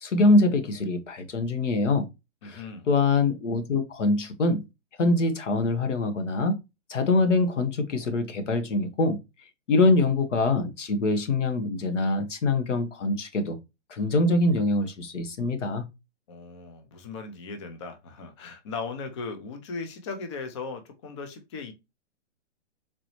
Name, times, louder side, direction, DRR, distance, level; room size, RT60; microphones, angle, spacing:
voice 1, 0.0-2.1 2.4-4.6 5.0-6.6 6.9-9.2 9.7-13.6 13.9-15.8, left 2 dB, 90° left, 1.2 m, -24 dB
voice 2, 2.4-2.9 16.3-21.7, left 4 dB, 25° left, 0.5 m, -37 dB
4.0 x 2.8 x 3.0 m
hypercardioid pair, 160°, 36 cm